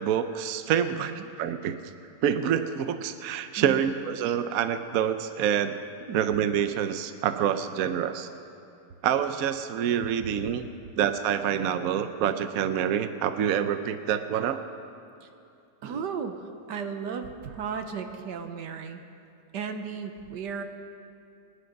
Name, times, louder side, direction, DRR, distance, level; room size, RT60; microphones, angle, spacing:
voice 1, 0.0-1.8 2.2-5.8 6.1-8.3 9.0-10.7 11.0-14.6 15.8-16.0, right 9 dB, 65° right, 10 dB, 1.0 m, -27 dB
voice 2, 0.9-1.3 3.6-3.9 6.1-6.2 15.2-15.3 15.8-16.4 16.7-19.0 19.5-20.6, right 6 dB, 85° right, 7 dB, 1.6 m, -35 dB
25.0 x 10.5 x 5.3 m, 2.6 s
omnidirectional pair, 1.8 m